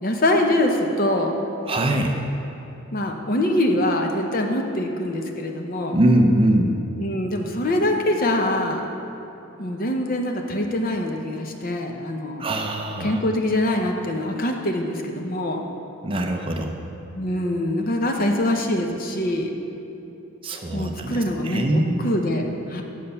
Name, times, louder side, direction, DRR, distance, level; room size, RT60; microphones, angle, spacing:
voice 1, 0.0-1.3 2.9-6.0 7.0-8.9 9.6-12.5 13.0-15.6 17.1-19.5 20.7-22.8, left 1 dB, 40° left, 3 dB, 0.7 m, -24 dB
voice 2, 1.7-2.2 5.9-6.8 12.4-13.2 16.0-16.8 20.4-22.0, right 1 dB, 25° right, 3 dB, 0.5 m, -22 dB
8.9 x 6.6 x 5.5 m, 3.0 s
head